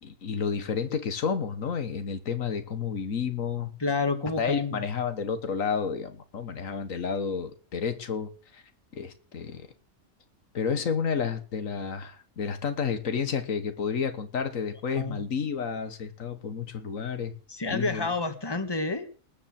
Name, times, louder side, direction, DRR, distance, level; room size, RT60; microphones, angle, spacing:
voice 1, 0.0-3.7 4.4-8.6 8.9-9.7 10.5-17.3 17.7-18.1, left 6 dB, 85° left, 1.8 m, -31 dB
voice 2, 3.8-4.8 15.0-15.2 17.5-19.0, left 3 dB, 20° left, 1.7 m, -29 dB
19.0 x 6.9 x 7.6 m
omnidirectional pair, 1.3 m